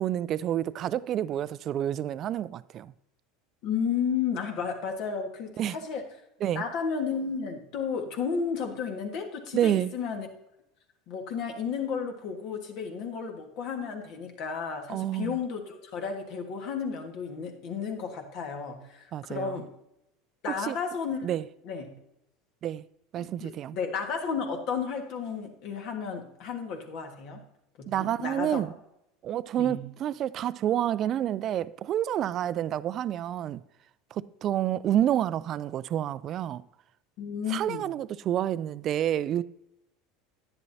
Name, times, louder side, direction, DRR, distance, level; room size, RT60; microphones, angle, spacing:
voice 1, 0.0-2.9 5.6-5.8 6.4-6.6 9.5-9.9 14.9-15.4 19.1-19.6 20.7-20.8 21.2-21.4 22.6-22.8 23.1-23.8 27.9-28.7 29.2-33.6 34.1-36.6 37.5-39.4, right 11 dB, 45° right, 0.3 m, -29 dB
voice 2, 3.6-6.0 6.5-10.3 11.1-19.7 20.4-21.3 21.6-21.9 23.2-27.4 27.8-28.6 29.6-29.8 37.2-37.9, left 6 dB, 55° left, 1.6 m, -33 dB
10.5 x 9.1 x 2.7 m
hypercardioid pair, 75°, 0 cm